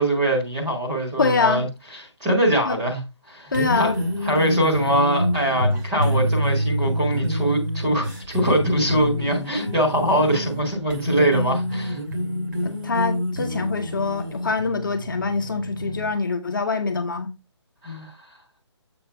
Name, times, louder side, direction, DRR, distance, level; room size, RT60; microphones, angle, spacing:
voice 1, 0.0-1.6 2.2-3.0 3.3-3.9 4.2-12.0 17.8-18.1, right 1 dB, 10° right, 1.7 m, -23 dB
voice 2, 1.2-1.6 2.7-2.8 3.5-4.0 12.6-17.3, left 4 dB, 45° left, 1.1 m, -24 dB
sound 1, 3.5-16.1, equal, 45° right, 2.2 m, -27 dB
7.9 x 5.7 x 3.4 m
hypercardioid pair, 180°, 15 cm